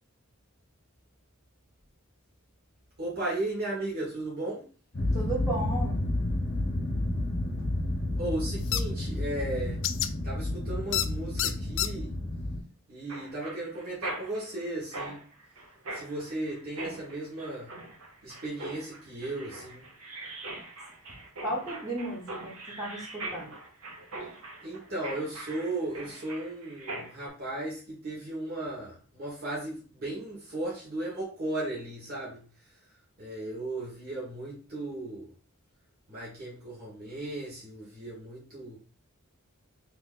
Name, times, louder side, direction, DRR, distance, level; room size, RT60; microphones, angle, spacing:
voice 1, 3.0-4.6 8.2-9.8 10.2-12.1 12.9-15.2 15.9-17.7 18.2-19.8 24.6-32.4 33.2-35.3 36.1-38.8, right 2 dB, 45° right, -7 dB, 1.5 m, -36 dB
sound 1, 4.9-12.6, left 1 dB, 45° left, 0.9 m, -31 dB
voice 2, 5.1-6.0 21.4-23.5, right 1 dB, 15° right, -5 dB, 1.0 m, -34 dB
sound 2, 8.7-8.8 9.8-10.1 10.9-11.1 11.4-11.9, left 12 dB, 60° left, 0.3 m, -27 dB
Mechanisms, 13.1-27.3, right 2 dB, 90° right, 1.0 m, -42 dB
3.1 x 2.7 x 3.8 m, 0.40 s
head